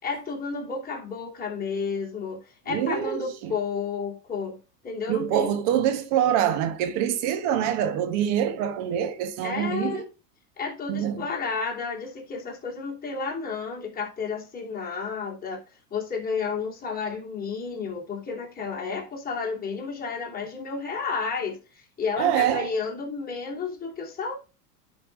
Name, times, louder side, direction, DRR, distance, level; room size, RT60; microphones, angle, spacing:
voice 1, 0.0-5.5 9.4-10.0 10.6-15.6 15.9-24.4, left 5 dB, 20° left, 2.9 m, -31 dB
voice 2, 2.7-3.5 5.1-10.1 10.9-11.2 22.2-22.7, right 10 dB, 50° right, 1.6 m, -25 dB
10.5 x 4.7 x 3.9 m
hypercardioid pair, 100°, 48 cm